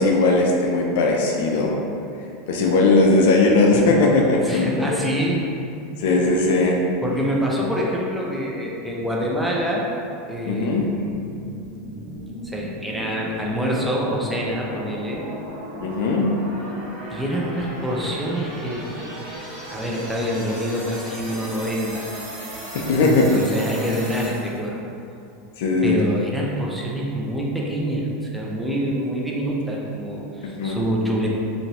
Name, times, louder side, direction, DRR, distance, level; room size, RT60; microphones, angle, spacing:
voice 1, 0.0-1.8 2.5-4.9 6.0-6.8 10.5-10.9 15.8-16.3 22.7-23.3 25.6-26.0 30.5-30.8, left 3 dB, 70° left, 0 dB, 0.4 m, -18 dB
voice 2, 4.4-5.5 7.0-9.9 10.3-11.0 12.4-15.2 17.1-18.8 19.7-22.0 22.8-24.8 25.8-31.3, equal, 5° right, -4 dB, 0.5 m, -26 dB
sound 1, 10.7-24.7, right 1 dB, 60° right, 1.1 m, -36 dB
2.9 x 2.6 x 2.8 m, 2.6 s
hypercardioid pair, 95°, 0 cm